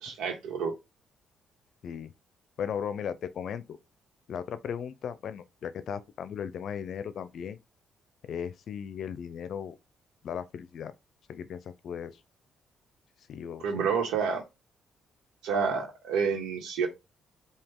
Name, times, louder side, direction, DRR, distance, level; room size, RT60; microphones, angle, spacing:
voice 1, 0.0-0.7 13.6-14.4 15.4-16.9, right 6 dB, 90° right, 1.6 m, -29 dB
voice 2, 2.6-3.8 4.3-7.6 8.3-9.7 10.2-10.9 11.3-12.1 13.3-13.9, left 8 dB, 65° left, 0.6 m, -36 dB
4.8 x 2.8 x 3.7 m
cardioid pair, 90°, 0 cm